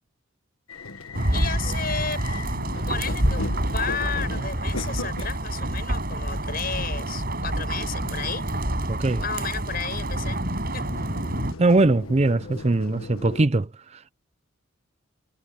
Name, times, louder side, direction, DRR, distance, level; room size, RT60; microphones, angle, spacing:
sound 1, 0.7-13.5, left 3 dB, 90° left, 1.5 m, -39 dB
sound 2, 1.1-11.5, right 1 dB, 45° right, 5.6 m, -27 dB
voice 1, 1.3-2.4 2.9-3.5 3.7-8.5 9.2-10.4 10.7-10.9, left 6 dB, 45° left, 6.4 m, -33 dB
voice 2, 8.9-9.2 11.6-13.7, right 2 dB, 30° right, 0.5 m, -21 dB
head